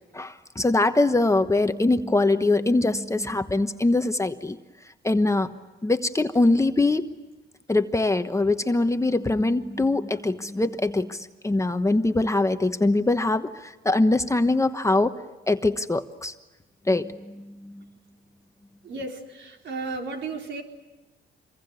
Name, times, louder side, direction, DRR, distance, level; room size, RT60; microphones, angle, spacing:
voice 1, 0.1-4.6 5.0-5.5 5.8-7.0 7.7-15.1 15.5-16.3 16.9-17.8, left 2 dB, 15° left, 8 dB, 1.2 m, -23 dB
voice 2, 18.8-20.6, right 3 dB, 65° right, 2 dB, 4.4 m, -34 dB
26.5 x 23.0 x 9.7 m, 1.1 s
cardioid pair, 90°, 20 cm